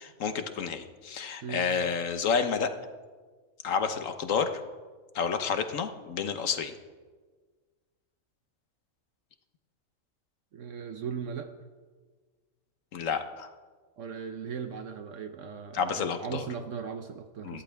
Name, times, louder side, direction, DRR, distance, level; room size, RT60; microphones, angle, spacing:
voice 1, 0.0-2.7 3.6-4.5 5.1-6.7 12.9-13.5 15.7-16.5 17.4-17.6, left 6 dB, 70° left, 8 dB, 1.4 m, -30 dB
voice 2, 10.5-11.5 14.0-17.6, right 6 dB, 70° right, 8 dB, 1.1 m, -38 dB
22.0 x 14.5 x 3.5 m, 1.4 s
omnidirectional pair, 1.4 m